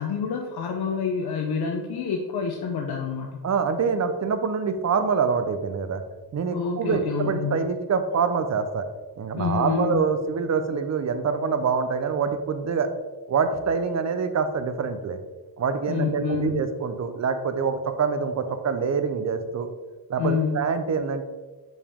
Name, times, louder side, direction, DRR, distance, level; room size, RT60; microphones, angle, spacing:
voice 1, 0.0-3.4 6.5-7.6 9.3-10.1 15.9-16.6 20.2-20.6, left 6 dB, 80° left, 1 dB, 0.7 m, -27 dB
voice 2, 3.4-6.0 6.3-8.9 9.2-12.9 13.3-15.2 15.6-19.7 20.1-21.2, right 5 dB, 45° right, 9 dB, 0.6 m, -25 dB
5.2 x 5.0 x 3.5 m, 1.3 s
wide cardioid pair, 115°, 37 cm